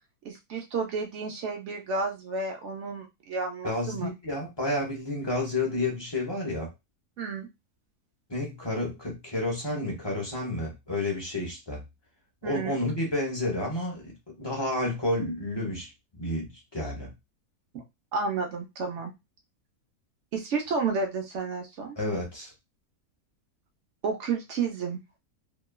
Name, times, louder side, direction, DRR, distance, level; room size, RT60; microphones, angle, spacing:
voice 1, 0.2-4.1 7.2-7.5 12.4-12.8 17.7-17.8 18.1-19.1 20.3-22.0 24.0-25.0, right 4 dB, 60° right, 0.9 m, -31 dB
voice 2, 3.6-6.7 8.3-11.8 12.4-17.1 22.0-22.5, left 1 dB, 30° left, 0.5 m, -30 dB
3.0 x 2.2 x 2.2 m
omnidirectional pair, 1.6 m